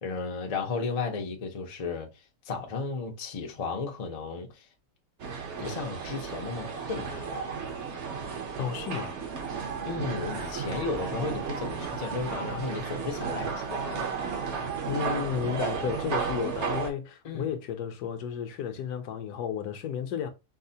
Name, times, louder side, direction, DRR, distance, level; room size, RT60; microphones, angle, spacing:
voice 1, 0.0-2.1 2.5-4.7 5.6-7.5 9.8-14.1 17.2-17.5, left 4 dB, 60° left, 0.3 m, -34 dB
sound 1, 5.2-16.9, right 5 dB, 55° right, 0.9 m, -33 dB
voice 2, 8.6-9.1 14.9-20.3, left 8 dB, 80° left, 1.1 m, -33 dB
4.7 x 2.1 x 2.7 m
omnidirectional pair, 1.7 m